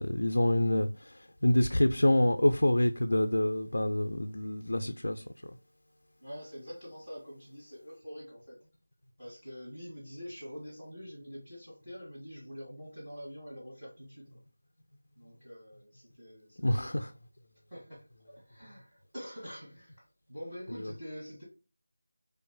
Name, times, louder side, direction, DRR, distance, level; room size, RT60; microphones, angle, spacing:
voice 1, 0.0-5.2 16.6-17.1 20.8-20.9, left 1 dB, 80° left, 0.3 m, -27 dB
voice 2, 6.2-8.6 9.2-14.4 15.1-17.0 17.7-21.4, equal, 10° right, 1.4 m, -46 dB
4.0 x 2.4 x 2.2 m
figure-of-eight pair, 175°, 0 cm